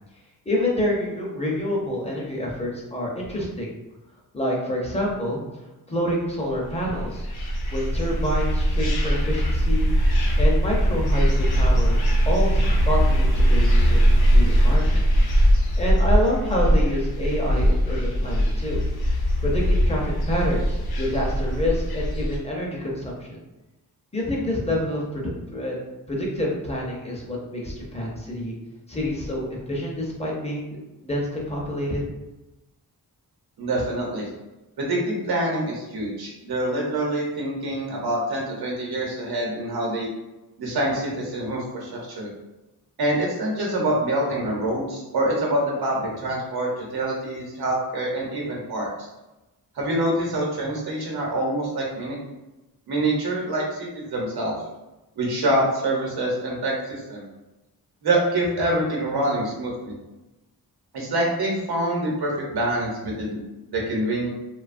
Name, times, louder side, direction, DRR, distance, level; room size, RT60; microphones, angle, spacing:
voice 1, 0.5-3.7 4.3-5.4 5.9-7.3 7.7-9.9 10.4-12.0 12.3-15.0 15.8-18.8 19.4-23.4 24.1-25.8 26.1-28.5 28.9-30.8 31.0-32.1, left 1 dB, 20° left, -3 dB, 0.5 m, -27 dB
sound 1, 6.7-22.4, equal, 80° left, 0.6 m, -20 dB
voice 2, 33.6-34.3 34.8-40.1 40.6-42.3 43.0-49.1 49.7-52.2 52.9-54.6 55.2-57.3 58.0-59.9 60.9-63.4 63.7-64.3, right 1 dB, 85° right, -2 dB, 0.9 m, -25 dB
2.7 x 2.2 x 2.4 m, 1.0 s
wide cardioid pair, 160°, 37 cm